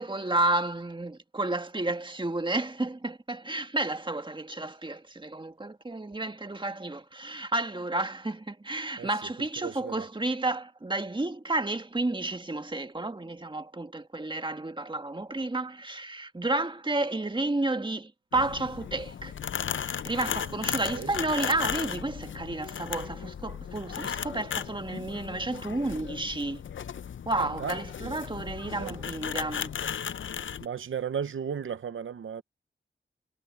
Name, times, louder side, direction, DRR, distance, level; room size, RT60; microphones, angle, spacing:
voice 1, 0.0-19.3 19.7-26.6 27.2-29.7, right 2 dB, 25° right, 1.7 m, -31 dB
voice 2, 9.6-10.1 20.8-21.1 27.4-28.2 28.8-29.0 30.6-32.4, right 7 dB, 90° right, 0.7 m, -35 dB
sound 1, 18.3-30.7, left 8 dB, 80° left, 0.6 m, -36 dB
wide cardioid pair, 65°, 20 cm